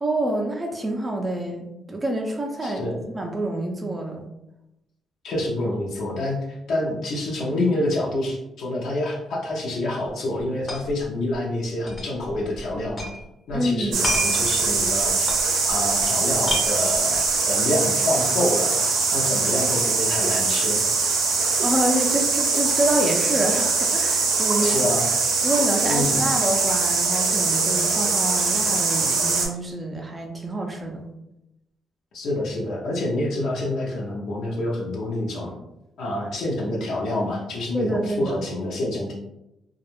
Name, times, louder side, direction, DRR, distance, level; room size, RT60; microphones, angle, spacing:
voice 1, 0.0-2.9 3.1-4.2 13.5-14.1 21.6-24.9 25.4-31.0 37.7-38.4, right 1 dB, 20° right, 1 dB, 0.4 m, -27 dB
voice 2, 2.6-3.1 5.2-13.1 13.5-15.3 15.7-17.2 17.5-18.8 19.1-20.8 24.5-25.1 25.8-26.3 32.1-35.6 36.0-39.1, left 1 dB, 75° left, -3 dB, 0.6 m, -27 dB
sound 1, 10.1-10.2 10.4-11.0 11.3-11.4 11.9-13.2 13.5-16.0 16.3-17.4, left 1 dB, 35° left, 0.6 m, -31 dB
sound 2, 13.9-29.5, right 4 dB, 85° right, 0.6 m, -22 dB
2.2 x 2.0 x 3.0 m, 0.89 s
cardioid pair, 90°, 0 cm